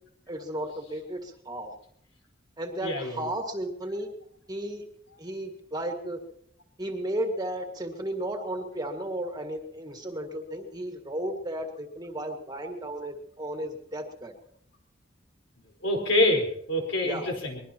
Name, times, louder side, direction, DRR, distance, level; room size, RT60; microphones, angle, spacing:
voice 1, 0.3-1.7 2.6-4.1 4.5-4.8 5.2-6.2 6.8-14.3 17.0-17.3, right 1 dB, 20° right, 3 dB, 1.8 m, -34 dB
voice 2, 2.8-3.3 15.8-17.6, left 1 dB, 80° left, 1 dB, 4.8 m, -26 dB
23.0 x 21.5 x 3.0 m, 0.71 s
head